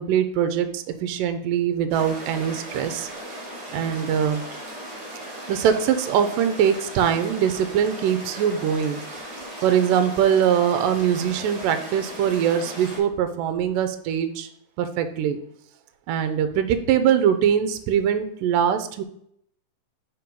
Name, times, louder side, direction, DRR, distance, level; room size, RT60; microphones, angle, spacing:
voice 1, 0.0-3.1 3.7-4.4 5.5-9.2 9.6-14.5 14.8-15.4 16.1-19.0, right 8 dB, 80° right, 9 dB, 2.1 m, -22 dB
sound 1, 1.9-13.0, right 1 dB, 40° right, 2.3 m, -37 dB
5.5 x 4.5 x 5.2 m, 0.70 s
omnidirectional pair, 4.0 m